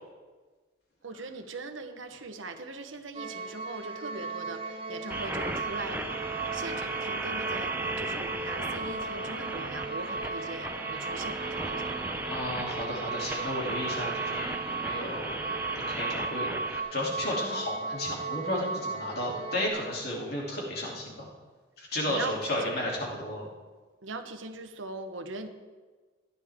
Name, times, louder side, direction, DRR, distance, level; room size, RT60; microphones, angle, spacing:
voice 1, 1.0-11.9 22.1-22.9 24.0-25.5, right 3 dB, 85° right, 7 dB, 1.1 m, -40 dB
sound 1, 3.1-19.7, right 4 dB, 25° right, 1.1 m, -36 dB
sound 2, 5.1-16.8, right 2 dB, 10° right, 0.6 m, -36 dB
voice 2, 12.3-15.3 15.7-21.3 21.8-23.5, left 1 dB, 55° left, -3 dB, 2.9 m, -33 dB
16.0 x 10.5 x 3.6 m, 1.4 s
head